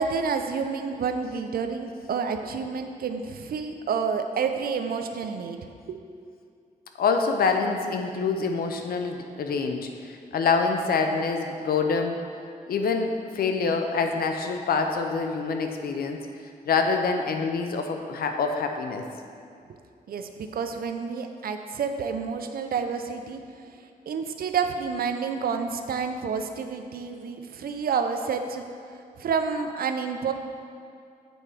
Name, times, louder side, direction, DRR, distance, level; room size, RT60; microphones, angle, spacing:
voice 1, 0.0-6.0 10.2-10.3 20.1-28.6 28.9-30.3, right 5 dB, 80° right, 6 dB, 0.5 m, -29 dB
voice 2, 7.0-12.2 12.7-16.2 16.6-19.0, left 4 dB, 85° left, 5 dB, 0.6 m, -26 dB
7.9 x 4.4 x 4.9 m, 2.4 s
cardioid pair, 80°, 15 cm